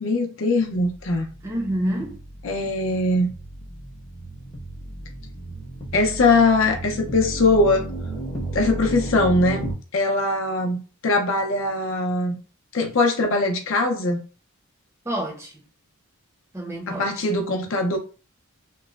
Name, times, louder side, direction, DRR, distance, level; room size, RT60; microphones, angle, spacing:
voice 1, 0.0-1.3 2.4-3.3 5.9-7.9 8.5-12.4 12.7-14.2 16.9-18.0, left 2 dB, 60° left, 0.5 m, -21 dB
sound 1, 0.7-9.7, right 1 dB, 25° left, 0.7 m, -34 dB
voice 2, 1.4-2.2 15.0-15.6 16.5-17.3, right 1 dB, 10° right, 0.6 m, -28 dB
3.0 x 2.1 x 2.3 m
head